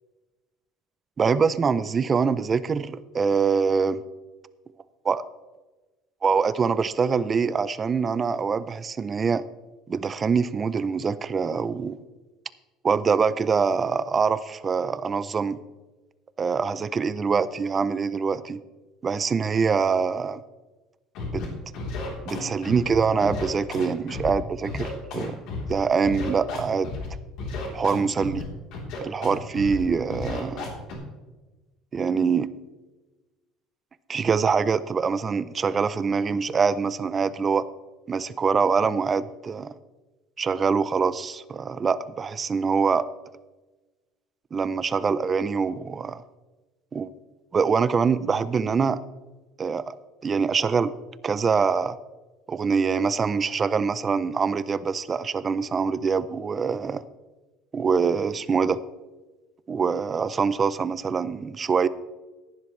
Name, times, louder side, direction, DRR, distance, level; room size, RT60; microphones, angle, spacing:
voice 1, 1.2-4.0 5.0-5.2 6.2-9.4 9.9-12.0 12.8-15.6 16.4-18.6 19.0-20.4 21.3-21.4 22.3-25.3 25.7-26.9 27.7-28.4 29.0-30.7 31.9-32.5 34.1-37.7 38.1-39.7 40.4-43.1 44.5-46.2 46.9-47.1 47.5-49.0 49.6-50.0 50.2-50.9 51.2-52.0 52.5-57.0 57.7-58.8 59.7-61.9, right 5 dB, 25° right, 16 dB, 0.5 m, -24 dB
Scratching (performance technique), 21.1-21.5 21.7-22.9 23.2-24.3 24.6-25.7 26.0-27.1 27.4-28.4 28.7-29.3 29.5-29.8 30.1-30.9, left 3 dB, 60° left, 3.3 m, -33 dB
15.0 x 10.5 x 3.2 m, 1.2 s
cardioid pair, 145°, 0 cm